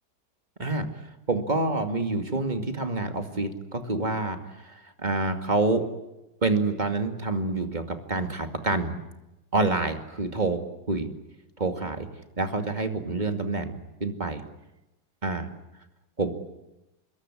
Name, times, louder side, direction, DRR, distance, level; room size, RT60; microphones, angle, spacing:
voice 1, 1.3-5.8 6.4-9.0 9.5-10.6 10.9-11.1 11.6-12.1 12.4-13.7 14.0-14.4 15.2-15.5 16.2-16.3, right 2 dB, 25° right, 7 dB, 2.5 m, -27 dB
26.5 x 22.0 x 10.0 m, 0.95 s
omnidirectional pair, 1.9 m